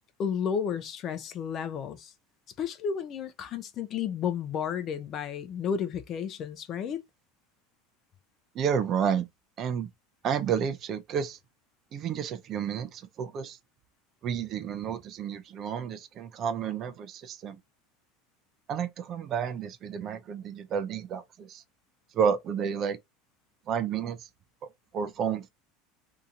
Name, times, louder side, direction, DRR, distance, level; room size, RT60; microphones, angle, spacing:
voice 1, 0.2-2.1 2.6-7.0, left 7 dB, 35° left, 0.6 m, -32 dB
voice 2, 8.5-9.3 9.6-9.9 10.2-11.4 11.9-13.6 14.2-17.6 18.7-21.6 22.1-23.0 23.7-24.3 24.9-25.5, right 7 dB, 35° right, 0.5 m, -31 dB
2.8 x 2.8 x 3.7 m
supercardioid pair, 140°, 0 cm